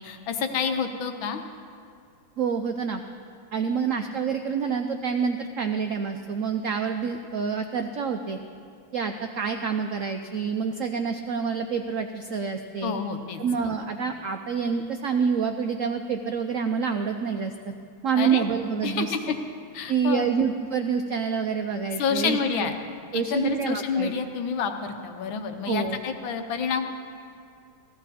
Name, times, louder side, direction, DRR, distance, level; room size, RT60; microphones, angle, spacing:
voice 1, 0.0-1.4 12.8-13.8 18.2-18.4 18.8-19.3 19.7-20.3 22.0-22.7 23.1-26.9, left 6 dB, 80° left, 6 dB, 1.7 m, -28 dB
voice 2, 2.4-3.0 3.5-8.4 8.9-12.9 13.4-17.7 18.0-19.3 19.9-22.7 23.1-24.1 25.7-26.0, right 6 dB, 90° right, 6 dB, 0.7 m, -27 dB
16.0 x 14.5 x 4.2 m, 2.4 s
omnidirectional pair, 2.1 m